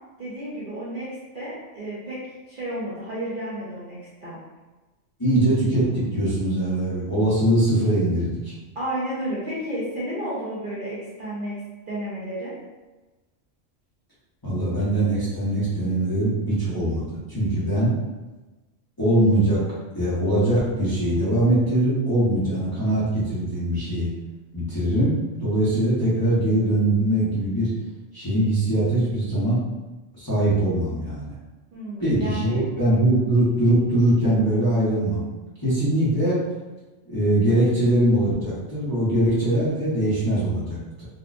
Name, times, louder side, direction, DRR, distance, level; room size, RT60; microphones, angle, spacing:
voice 1, 0.2-2.2 2.5-4.4 8.7-11.6 11.9-12.5 31.7-32.7, right 1 dB, 45° right, -8 dB, 0.8 m, -32 dB
voice 2, 5.2-8.5 14.4-17.9 19.0-19.6 19.9-24.1 24.5-25.1 25.4-27.7 28.1-29.6 30.2-31.3 32.0-35.2 35.6-36.4 37.0-41.0, right 1 dB, 20° left, -11 dB, 0.9 m, -22 dB
4.0 x 2.3 x 2.5 m, 1.2 s
omnidirectional pair, 1.4 m